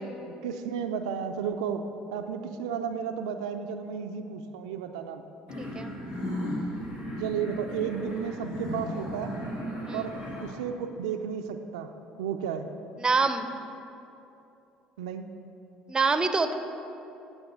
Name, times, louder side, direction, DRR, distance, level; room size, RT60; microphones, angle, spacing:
voice 1, 0.0-1.8 2.1-5.2 7.0-9.4 9.9-11.9 12.2-12.7 15.0-15.3, right 7 dB, 85° right, 6 dB, 0.3 m, -33 dB
sound 1, 5.5-10.5, equal, 80° left, 1.9 m, -35 dB
voice 2, 5.6-5.9 9.9-10.0 13.0-13.5 15.9-16.5, right 4 dB, 25° right, 9 dB, 0.5 m, -25 dB
9.6 x 3.2 x 6.8 m, 2.8 s
hypercardioid pair, 70°, 3 cm